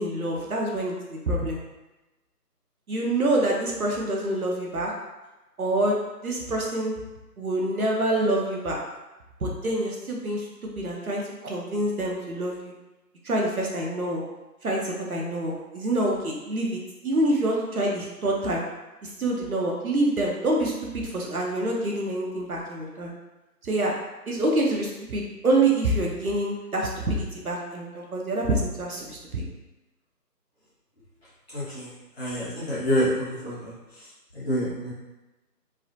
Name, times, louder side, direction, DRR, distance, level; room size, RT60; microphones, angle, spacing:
voice 1, 0.0-1.6 2.9-4.9 5.6-6.0 6.2-7.0 7.4-8.8 9.4-12.7 13.2-14.2 14.6-18.6 19.0-23.1 23.6-23.9 24.3-29.4, right 1 dB, 60° right, -2 dB, 0.6 m, -26 dB
voice 2, 31.5-31.9 32.2-33.7 34.3-34.9, equal, 40° left, -11 dB, 1.3 m, -27 dB
3.1 x 2.0 x 2.5 m, 1.1 s
figure-of-eight pair, 160°, 49 cm